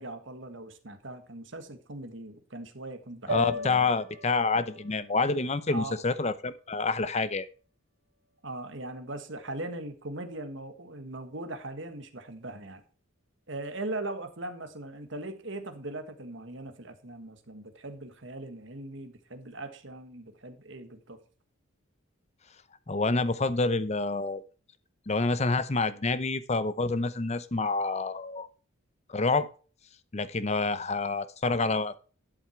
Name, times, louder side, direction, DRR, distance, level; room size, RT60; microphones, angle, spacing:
voice 1, 0.0-3.9 5.7-5.9 8.4-12.8 13.5-21.2, right 2 dB, 60° right, 1.6 m, -40 dB
voice 2, 3.3-7.5 22.9-24.4 25.1-28.5 29.1-29.5 30.1-32.0, left 3 dB, 30° left, 0.7 m, -28 dB
sound 1, 3.3-7.6, equal, 75° right, 2.3 m, -39 dB
11.5 x 7.8 x 4.5 m
head